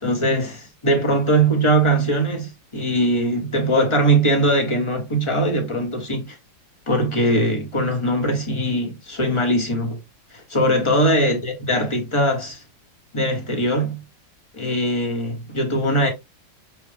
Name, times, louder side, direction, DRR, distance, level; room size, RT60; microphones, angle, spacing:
voice 1, 0.0-6.4 6.9-10.0 10.3-12.6 13.1-14.0 14.5-16.1, right 1 dB, 20° left, 1.2 m, -21 dB
6.1 x 2.4 x 3.4 m
omnidirectional pair, 2.1 m